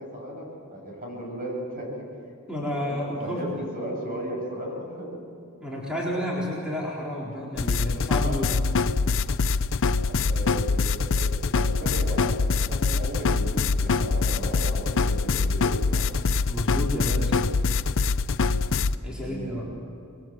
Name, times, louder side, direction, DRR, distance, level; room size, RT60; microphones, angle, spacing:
voice 1, 0.0-1.9 2.9-5.2 10.0-16.1 19.0-19.7, right 1 dB, 40° right, 0 dB, 7.5 m, -36 dB
voice 2, 2.5-3.4 5.6-8.6 16.4-17.4 19.0-19.6, equal, 5° right, -5 dB, 4.0 m, -31 dB
sound 1, 7.6-19.0, left 4 dB, 65° left, 0.6 m, -24 dB
28.0 x 22.0 x 7.6 m, 2.6 s
head